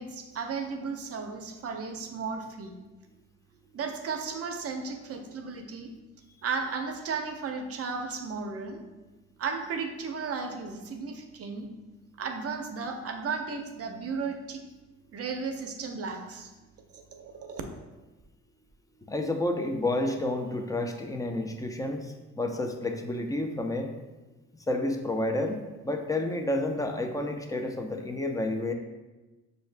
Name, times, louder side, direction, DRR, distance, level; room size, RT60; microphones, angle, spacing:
voice 1, 0.0-2.7 3.7-5.9 6.4-8.8 9.4-11.7 12.2-14.6 15.1-16.5 16.9-17.6, right 5 dB, 50° right, 4 dB, 0.6 m, -34 dB
voice 2, 19.1-23.9 24.7-28.7, left 1 dB, 10° left, 5 dB, 0.5 m, -30 dB
5.5 x 2.7 x 3.3 m, 1.1 s
cardioid pair, 90°, 30 cm